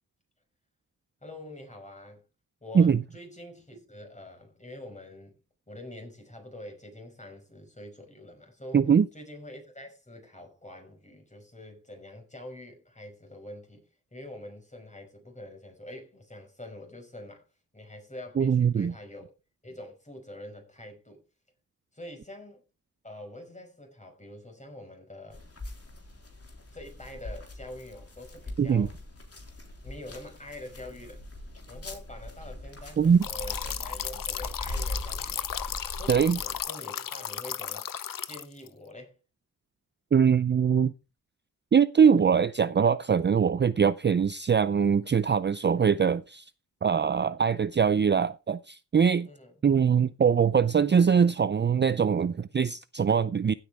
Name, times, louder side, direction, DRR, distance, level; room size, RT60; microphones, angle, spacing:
voice 1, 1.2-2.2 2.6-5.3 5.7-8.8 9.1-13.8 14.1-17.4 17.7-19.3 19.6-21.2 21.9-22.6 23.0-25.4 26.7-29.0 29.8-31.2 31.7-35.5 35.9-37.8 38.2-39.2 49.2-49.5, left 1 dB, 20° left, 5.5 m, -45 dB
voice 2, 8.7-9.1 18.4-18.9 28.6-28.9 33.0-33.3 36.1-36.4 40.1-40.9 41.7-46.5 46.8-49.3 49.6-53.5, right 7 dB, 35° right, 0.5 m, -22 dB
sound 1, 25.3-36.6, left 1 dB, 45° left, 3.8 m, -41 dB
sound 2, 33.2-38.7, left 9 dB, 75° left, 0.9 m, -35 dB
15.5 x 8.8 x 3.5 m
wide cardioid pair, 90°, 33 cm